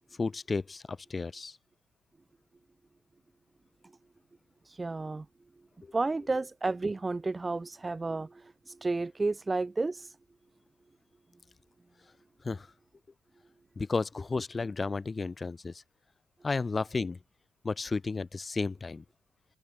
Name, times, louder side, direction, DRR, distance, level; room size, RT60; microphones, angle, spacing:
voice 1, 0.2-1.6 5.8-5.9 12.4-12.7 13.8-15.8 16.4-17.2 17.6-19.0, left 4 dB, 30° left, 2.4 m, -33 dB
voice 2, 4.7-5.3 5.9-10.1, right 3 dB, 20° right, 0.9 m, -32 dB
cardioid pair, 90°, 0 cm